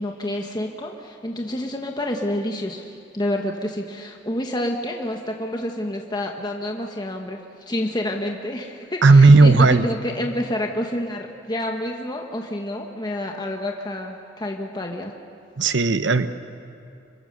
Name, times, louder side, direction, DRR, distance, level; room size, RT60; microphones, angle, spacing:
voice 1, 0.0-15.1, left 1 dB, 25° left, 2 dB, 1.3 m, -28 dB
voice 2, 9.0-9.9 15.6-16.3, right 3 dB, 90° right, 11 dB, 0.9 m, -13 dB
26.0 x 22.5 x 6.7 m, 2.6 s
head